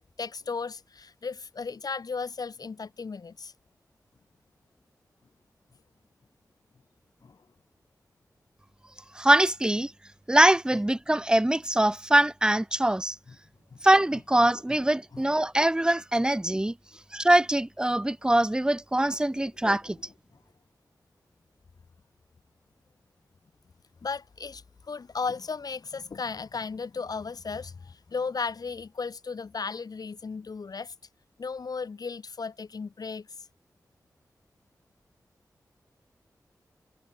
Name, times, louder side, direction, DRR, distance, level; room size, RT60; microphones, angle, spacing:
voice 1, 0.0-3.5 7.2-7.4 10.7-10.8 13.3-13.4 14.7-15.4 19.3-19.5 19.8-20.1 24.0-30.9 31.4-33.5, left 5 dB, 70° left, 2.5 m, -36 dB
voice 2, 9.1-9.9 10.3-13.2 13.8-16.7 17.1-20.0, right 1 dB, 10° right, 0.8 m, -23 dB
cardioid pair, 45°, 7 cm